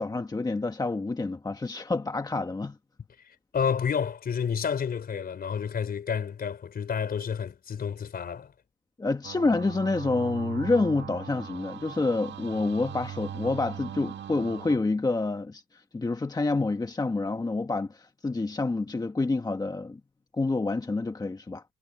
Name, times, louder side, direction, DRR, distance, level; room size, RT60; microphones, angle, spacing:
voice 1, 0.0-2.8 9.0-20.0 20.3-21.6, left 3 dB, 20° left, 1.2 m, -28 dB
voice 2, 3.5-8.5, left 7 dB, 50° left, 4.0 m, -30 dB
sound 1, 9.2-14.8, right 10 dB, 65° right, 1.6 m, -39 dB
cardioid pair, 90°, 20 cm